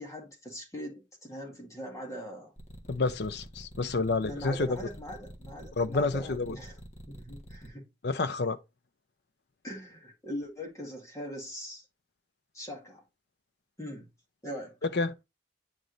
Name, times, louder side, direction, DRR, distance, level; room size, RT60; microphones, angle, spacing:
voice 1, 0.0-2.5 4.2-6.8 7.1-7.8 9.6-11.8 12.5-13.0 13.8-14.1 14.4-14.8, equal, 15° left, 1.8 m, -41 dB
sound 1, 2.6-7.7, equal, 40° left, 1.3 m, -47 dB
voice 2, 2.9-4.7 5.8-6.6 8.0-8.6 14.9-15.1, left 3 dB, 65° left, 0.6 m, -29 dB
8.9 x 3.2 x 3.9 m
head